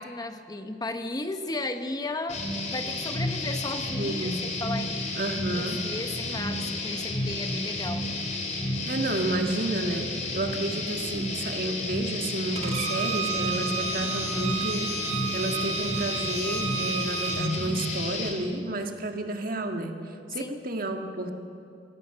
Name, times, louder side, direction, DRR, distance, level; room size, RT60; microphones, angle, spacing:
voice 1, 0.0-2.4 2.7-5.1 5.5-8.1 20.3-20.6, left 2 dB, 20° left, 7 dB, 0.9 m, -35 dB
sound 1, 2.3-18.3, left 2 dB, 40° left, 3.1 m, -31 dB
voice 2, 3.9-4.4 5.2-5.9 8.8-21.3, right 1 dB, 55° right, 4 dB, 1.7 m, -31 dB
Bowed string instrument, 12.6-17.5, right 6 dB, 35° right, 1.7 m, -32 dB
25.0 x 17.0 x 6.8 m, 2.5 s
head